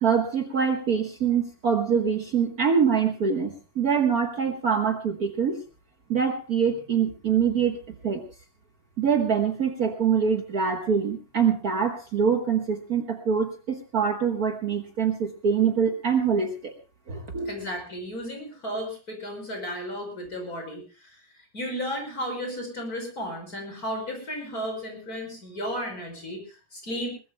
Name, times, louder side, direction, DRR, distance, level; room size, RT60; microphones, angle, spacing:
voice 1, 0.0-5.6 6.1-7.8 8.0-8.2 9.0-16.7 17.1-17.5, right 6 dB, 90° right, 4 dB, 0.8 m, -24 dB
voice 2, 17.5-21.2 21.5-27.1, equal, 25° left, 3 dB, 5.9 m, -34 dB
22.0 x 20.5 x 2.2 m, 0.33 s
omnidirectional pair, 3.7 m